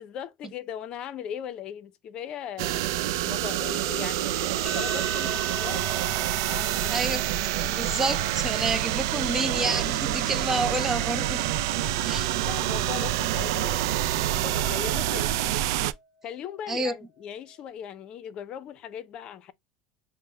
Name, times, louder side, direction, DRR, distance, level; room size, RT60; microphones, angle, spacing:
voice 1, 0.0-2.9 3.2-5.9 6.5-6.9 11.7-12.0 12.4-15.4 16.2-19.5, left 9 dB, 45° left, 0.6 m, -39 dB
sound 1, 2.6-15.9, right 13 dB, 80° right, 0.3 m, -27 dB
sound 2, 4.7-17.6, right 5 dB, 5° left, 1.0 m, -42 dB
voice 2, 6.7-7.2 7.6-11.5 12.0-12.4 15.0-15.1 16.7-17.0, right 2 dB, 20° right, 0.6 m, -29 dB
6.0 x 2.1 x 3.1 m
supercardioid pair, 125°, 2 cm